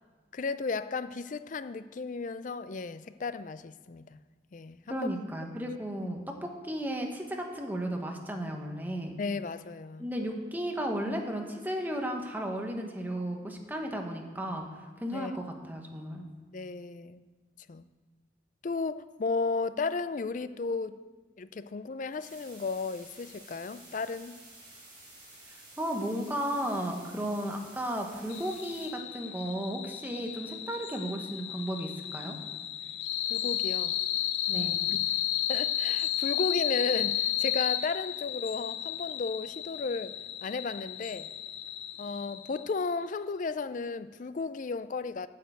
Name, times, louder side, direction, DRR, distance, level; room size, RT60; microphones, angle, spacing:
voice 1, 0.3-4.2 4.5-5.1 9.2-10.1 15.1-15.3 16.5-17.2 17.7-17.9 18.6-21.0 21.4-24.4 33.3-34.0 34.5-35.0 35.5-41.3 42.0-45.3, left 4 dB, 40° left, 14 dB, 0.4 m, -34 dB
voice 2, 4.9-9.2 10.0-16.3 25.8-32.4 34.5-34.8, right 1 dB, 10° right, 2 dB, 1.1 m, -34 dB
sound 1, 22.2-28.9, right 2 dB, 25° right, 3.8 m, -52 dB
sound 2, 28.3-42.8, left 11 dB, 75° left, 0.7 m, -33 dB
9.1 x 6.7 x 8.0 m, 1.4 s
head